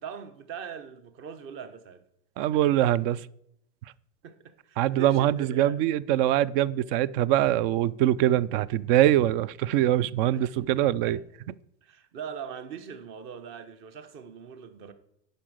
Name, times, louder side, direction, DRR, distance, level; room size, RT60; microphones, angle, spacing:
voice 1, 0.0-2.0 2.5-2.8 4.2-5.8 10.3-10.5 11.0-11.2 11.8-14.9, right 7 dB, 40° right, 1.0 m, -41 dB
voice 2, 2.4-3.2 4.8-11.2, right 12 dB, 55° right, 0.5 m, -23 dB
10.0 x 5.3 x 6.3 m
supercardioid pair, 150°, 32 cm